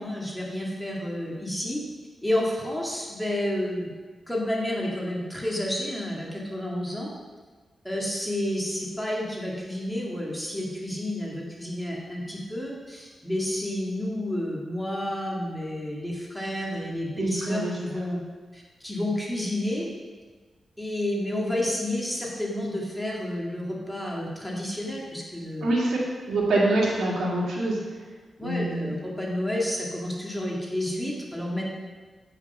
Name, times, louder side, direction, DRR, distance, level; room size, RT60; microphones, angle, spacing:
voice 1, 0.0-1.8 2.2-3.9 4.3-7.1 7.8-18.2 18.5-19.9 20.8-25.8 28.4-31.7, left 1 dB, 5° left, -3 dB, 2.2 m, -30 dB
voice 2, 17.2-17.7 25.6-26.0 26.3-27.8 28.4-29.0, right 2 dB, 80° right, -4 dB, 2.4 m, -25 dB
8.0 x 5.8 x 5.6 m, 1.4 s
cardioid pair, 70°, 0 cm